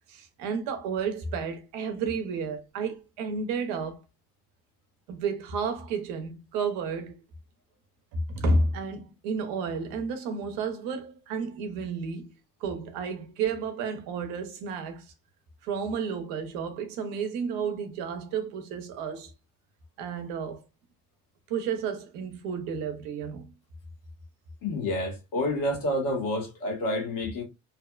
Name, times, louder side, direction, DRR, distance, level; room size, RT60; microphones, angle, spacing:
voice 1, 0.1-4.0 5.1-7.2 8.1-12.3 12.6-15.1 15.6-19.3 20.0-20.6 21.5-23.5, right 4 dB, 85° right, 0.7 m, -31 dB
voice 2, 24.6-27.4, left 1 dB, 70° left, 1.3 m, -29 dB
2.7 x 2.1 x 2.2 m
supercardioid pair, 60°, 35 cm